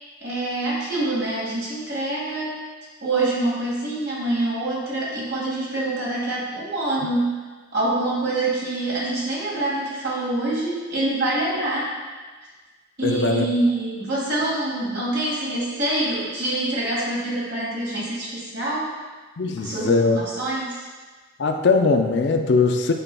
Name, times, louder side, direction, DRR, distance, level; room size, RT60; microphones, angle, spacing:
voice 1, 0.2-2.6 3.0-7.4 7.7-11.9 13.0-18.9 19.6-20.9, right 2 dB, 55° right, -6 dB, 2.0 m, -25 dB
voice 2, 13.0-13.4 19.4-20.2 21.4-22.9, left 4 dB, 60° left, 4 dB, 0.4 m, -20 dB
8.9 x 5.5 x 2.3 m, 1.4 s
head